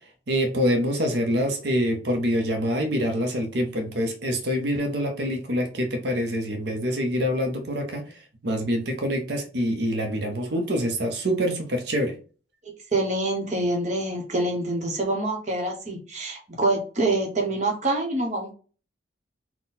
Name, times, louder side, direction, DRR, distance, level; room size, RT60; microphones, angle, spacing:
voice 1, 0.3-12.1, equal, 60° right, 4 dB, 0.7 m, -26 dB
voice 2, 12.9-18.5, right 2 dB, 35° right, 1 dB, 1.0 m, -26 dB
4.0 x 2.2 x 4.0 m, 0.38 s
head